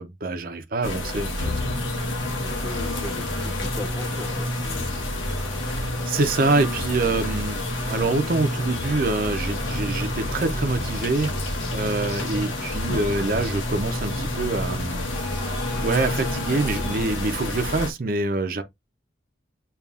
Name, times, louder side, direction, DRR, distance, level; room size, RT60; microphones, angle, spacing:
voice 1, 0.0-1.5 5.6-15.1 15.8-18.6, right 3 dB, 50° right, 0.6 m, -25 dB
sound 1, 0.8-17.9, left 2 dB, 90° left, 1.0 m, -30 dB
sound 2, 1.4-17.1, equal, 40° left, 2.6 m, -33 dB
voice 2, 2.6-4.9, equal, ahead, 0.8 m, -39 dB
6.8 x 2.4 x 2.4 m
head